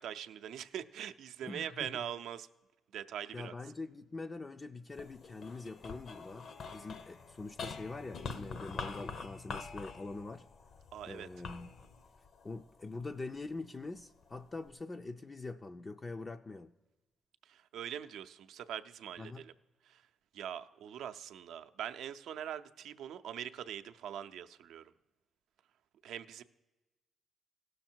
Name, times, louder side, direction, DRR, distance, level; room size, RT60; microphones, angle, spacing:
voice 1, 0.0-2.5 2.9-3.5 10.9-11.3 17.5-19.5 19.8-20.0 20.3-24.9 26.0-26.4, right 9 dB, 80° right, 9 dB, 0.5 m, -42 dB
voice 2, 1.4-1.9 3.3-10.5 11.1-11.7 12.4-16.7 19.2-19.5, left 3 dB, 25° left, 5 dB, 0.4 m, -44 dB
sound 1, 4.9-13.4 14.0-14.7, left 5 dB, 55° left, 0.7 m, -46 dB
16.5 x 6.5 x 4.4 m, 1.1 s
cardioid pair, 90°, 0 cm